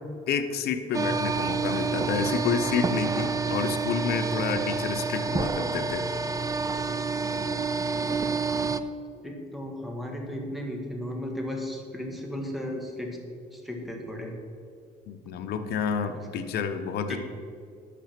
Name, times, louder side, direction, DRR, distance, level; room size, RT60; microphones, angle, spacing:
voice 1, 0.3-6.1 15.1-17.2, left 6 dB, 70° left, 8 dB, 0.9 m, -29 dB
sound 1, 0.9-8.8, right 4 dB, 20° right, 0.5 m, -28 dB
voice 2, 9.2-13.2 13.5-14.3 16.1-16.2 17.1-17.2, left 1 dB, ahead, 0 dB, 1.9 m, -35 dB
10.5 x 6.8 x 6.0 m, 2.4 s
cardioid pair, 110°, 17 cm